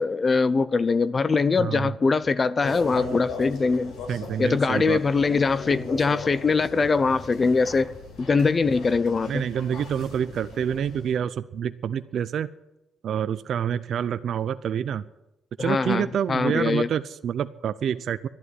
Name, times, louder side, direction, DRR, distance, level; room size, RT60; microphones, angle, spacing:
voice 1, 0.0-3.9 4.4-7.9 8.2-9.4 15.6-16.9, left 4 dB, 35° left, 0.5 m, -22 dB
voice 2, 1.6-1.9 4.1-5.0 9.3-12.5 13.0-15.0 15.6-18.3, right 8 dB, 65° right, 0.6 m, -27 dB
sound 1, 2.6-11.1, left 3 dB, 80° left, 5.4 m, -38 dB
12.0 x 11.0 x 9.7 m
cardioid pair, 90°, 0 cm